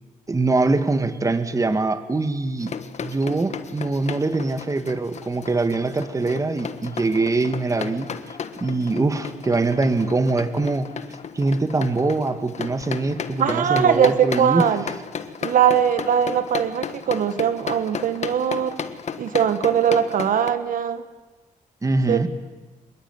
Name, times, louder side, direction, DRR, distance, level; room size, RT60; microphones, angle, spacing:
voice 1, 0.3-2.7 3.0-10.9 11.3-14.7 21.8-22.3, right 3 dB, 25° right, 10 dB, 1.8 m, -23 dB
sound 1, 2.6-20.5, left 6 dB, 55° left, 1.5 m, -34 dB
voice 2, 13.4-14.8 15.4-18.8 19.2-21.0 22.1-22.3, right 8 dB, 75° right, 11 dB, 1.4 m, -21 dB
25.5 x 21.5 x 9.6 m, 1.3 s
cardioid pair, 105°, 14 cm